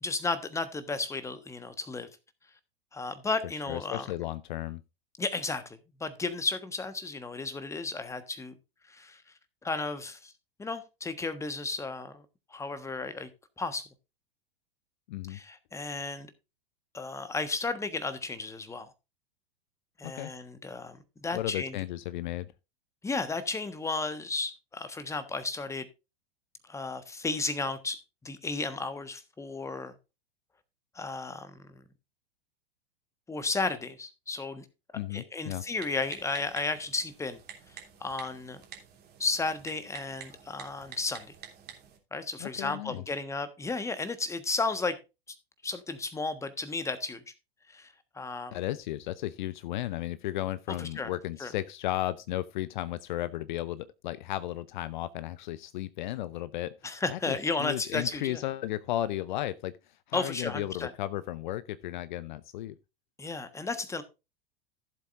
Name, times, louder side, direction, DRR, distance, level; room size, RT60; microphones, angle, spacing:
voice 1, 0.0-2.1 2.9-4.1 5.2-8.5 8.9-9.2 9.6-10.3 10.6-12.2 12.5-13.3 13.6-13.9 15.3-16.3 16.9-18.9 20.0-21.8 23.0-25.9 26.7-29.9 30.9-31.8 33.3-34.6 35.1-37.4 37.7-38.6 39.2-41.3 42.1-45.0 45.3-45.4 45.6-47.2 47.7-48.6 50.8-51.1 51.4-51.5 56.8-58.4 60.1-60.9 63.2-64.0, left 3 dB, 10° left, 1.3 m, -34 dB
voice 2, 3.7-4.8 15.1-15.4 20.0-20.3 21.3-22.5 34.9-35.6 42.4-43.0 48.5-62.8, left 14 dB, 50° left, 0.6 m, -34 dB
Typing, 35.8-42.0, right 8 dB, 35° right, 3.0 m, -49 dB
15.0 x 7.7 x 2.5 m
figure-of-eight pair, 95°, 30 cm